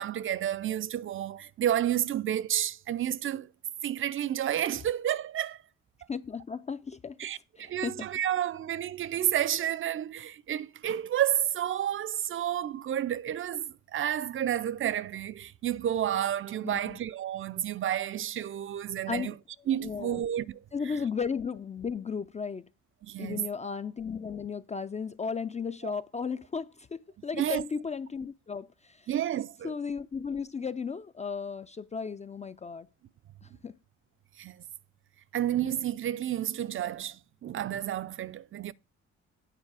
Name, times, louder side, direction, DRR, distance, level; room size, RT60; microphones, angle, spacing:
voice 1, 0.0-3.5 3.8-5.6 7.2-19.4 19.7-21.0 23.0-23.5 25.8-25.9 27.3-27.6 29.1-29.7 34.4-34.6 35.3-38.7, right 11 dB, 45° right, 0.5 m, -31 dB
voice 2, 6.1-7.2 7.6-8.0 16.6-17.0 19.1-19.3 19.8-20.2 20.7-22.7 23.2-29.0 29.6-32.9 33.6-33.7, left 5 dB, 25° left, 0.4 m, -35 dB
8.9 x 4.5 x 4.8 m
cardioid pair, 90°, 30 cm